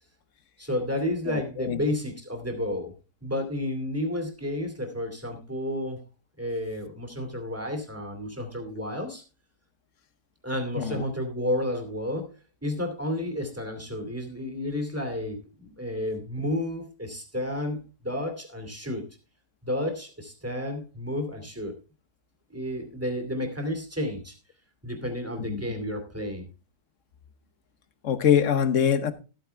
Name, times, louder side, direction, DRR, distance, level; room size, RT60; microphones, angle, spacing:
voice 1, 0.6-2.9 3.2-6.0 6.4-9.2 10.4-12.3 12.6-19.0 19.6-21.7 22.5-24.3 24.8-26.5, left 1 dB, 10° right, 2.5 m, -31 dB
voice 2, 1.3-1.8 10.8-11.0 25.5-25.6 28.0-29.1, left 8 dB, 55° left, 1.3 m, -24 dB
14.0 x 8.9 x 3.4 m
omnidirectional pair, 1.6 m